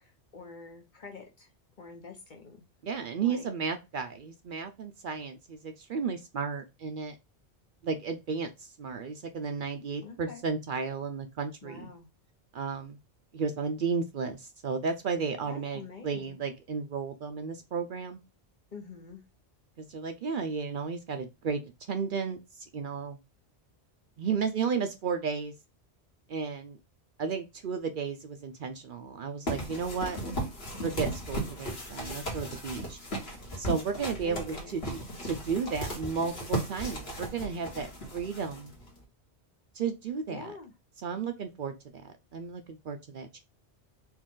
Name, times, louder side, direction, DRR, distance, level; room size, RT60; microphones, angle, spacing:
voice 1, 0.0-1.5 1.8-2.6 3.2-3.5 10.0-10.4 11.6-12.1 15.4-16.4 18.7-19.2 34.2-34.8 40.3-40.7, left 4 dB, 45° left, 2 dB, 1.1 m, -46 dB
voice 2, 2.8-7.1 7.8-11.9 12.5-13.0 13.3-18.2 19.8-21.6 21.9-23.2 24.2-25.5 26.3-26.8 27.2-30.2 30.8-33.0 33.6-38.7 39.7-40.5 41.0-41.7 42.0-43.4, right 5 dB, 60° right, 6 dB, 0.7 m, -33 dB
sound 1, 29.5-39.0, right 1 dB, 65° left, 1.6 m, -36 dB
4.4 x 2.4 x 3.7 m, 0.24 s
omnidirectional pair, 1.1 m